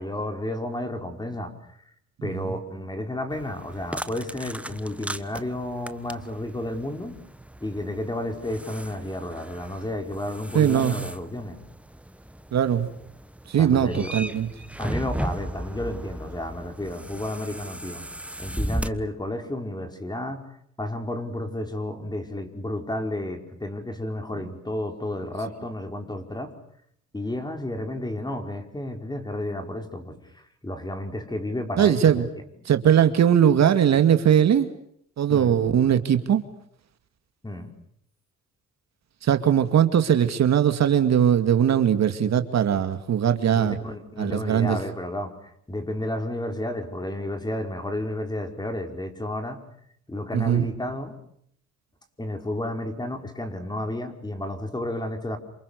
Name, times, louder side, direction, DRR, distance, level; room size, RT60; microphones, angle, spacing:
voice 1, 0.0-1.5 2.2-7.2 7.6-11.6 13.6-14.1 14.8-18.0 18.4-20.4 20.8-26.5 27.1-30.2 30.6-32.2 35.3-35.5 37.4-37.7 43.5-45.3 45.7-49.6 50.1-51.2 52.2-55.4, left 1 dB, 15° left, 6 dB, 5.1 m, -31 dB
sound 1, 3.3-18.9, right 1 dB, 5° right, 1.3 m, -36 dB
voice 2, 10.5-11.0 12.5-12.9 13.5-14.5 31.8-32.3 32.6-34.7 35.2-36.4 39.2-43.8 44.2-44.8 50.3-50.7, right 9 dB, 60° right, 9 dB, 2.4 m, -20 dB
28.5 x 27.5 x 6.8 m, 0.69 s
cardioid pair, 90°, 30 cm